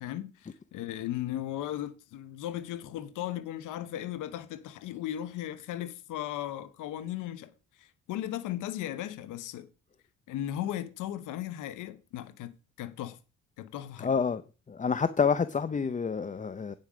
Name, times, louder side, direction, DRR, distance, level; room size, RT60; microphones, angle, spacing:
voice 1, 0.0-7.5 7.8-9.7 10.3-13.2 13.6-14.1, left 12 dB, 90° left, 0.9 m, -36 dB
voice 2, 14.0-14.4 14.7-16.8, left 6 dB, 25° left, 0.6 m, -28 dB
9.1 x 7.7 x 5.0 m
cardioid pair, 90°, 30 cm